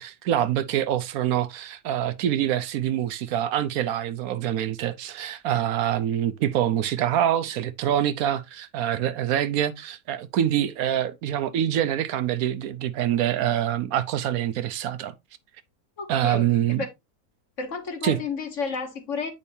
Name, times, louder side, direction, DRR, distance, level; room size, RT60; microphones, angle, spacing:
voice 1, 0.0-15.1 16.1-16.8 18.0-18.2, right 11 dB, 75° right, 1.0 m, -25 dB
voice 2, 16.0-16.5 17.6-19.3, left 5 dB, 55° left, 1.7 m, -31 dB
8.5 x 5.3 x 2.7 m
omnidirectional pair, 1.6 m